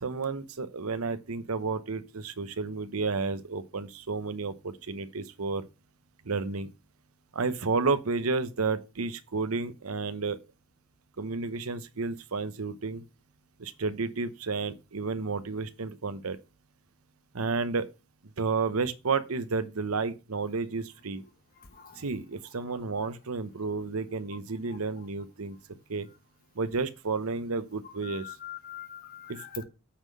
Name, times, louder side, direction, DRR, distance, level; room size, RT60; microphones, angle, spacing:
voice 1, 0.0-5.6 6.2-6.7 7.3-10.4 11.2-13.0 13.6-16.4 17.3-17.9 18.4-21.2 22.0-25.6 25.9-26.1 26.6-28.3 29.3-29.6, right 4 dB, 90° right, 0.8 m, -31 dB
voice 2, 21.7-22.0 28.0-29.6, left 11 dB, 45° left, 1.2 m, -43 dB
8.7 x 3.9 x 6.1 m
head